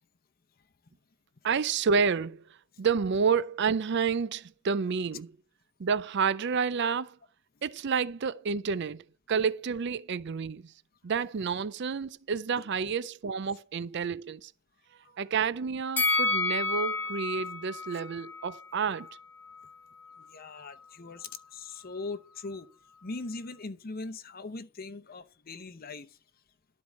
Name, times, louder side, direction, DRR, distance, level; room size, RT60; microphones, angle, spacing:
voice 1, 1.4-2.4 2.8-5.3 5.8-7.2 7.6-10.7 11.0-14.5 15.2-19.1, right 5 dB, 55° right, 0.5 m, -29 dB
Bell, 16.0-19.1 19.5-19.6, left 3 dB, 10° left, 1.3 m, -30 dB
voice 2, 20.2-22.7 23.0-26.2, left 3 dB, 45° left, 0.8 m, -40 dB
12.5 x 4.7 x 8.3 m
head